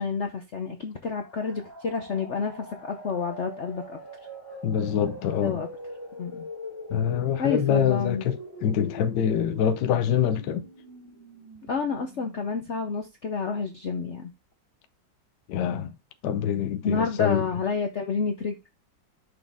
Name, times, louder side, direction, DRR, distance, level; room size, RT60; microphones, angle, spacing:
voice 1, 0.0-4.0 5.4-5.7 6.2-6.5 7.4-8.2 11.7-14.3 16.8-18.6, left 5 dB, 55° left, 0.8 m, -29 dB
sound 1, 1.1-12.8, left 1 dB, 15° left, 3.3 m, -42 dB
voice 2, 4.6-5.6 6.9-10.6 15.5-15.9 16.2-17.5, left 8 dB, 70° left, 1.2 m, -25 dB
6.1 x 5.0 x 3.5 m
omnidirectional pair, 2.0 m